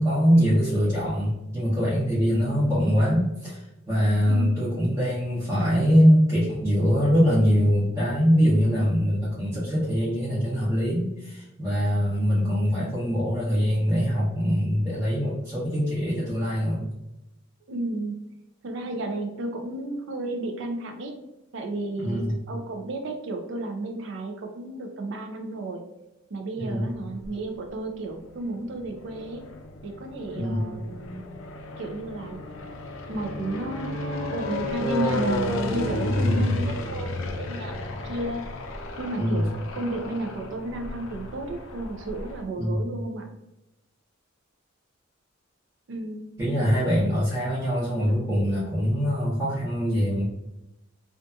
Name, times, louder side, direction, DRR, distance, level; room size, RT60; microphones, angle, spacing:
voice 1, 0.0-16.9 22.0-22.3 26.6-26.9 30.3-30.6 36.2-36.5 39.2-39.4 42.6-42.8 46.4-50.2, equal, 15° right, -12 dB, 0.8 m, -23 dB
voice 2, 4.2-4.6 17.7-18.2 18.6-21.2 21.5-25.8 26.3-29.5 29.8-31.3 31.8-32.5 33.1-38.4 39.0-43.3 45.9-46.3, right 2 dB, 65° right, 4 dB, 0.4 m, -32 dB
sound 1, 26.9-27.7 28.4-42.4, left 2 dB, 80° left, 0.4 m, -32 dB
2.6 x 2.4 x 2.3 m, 0.93 s
head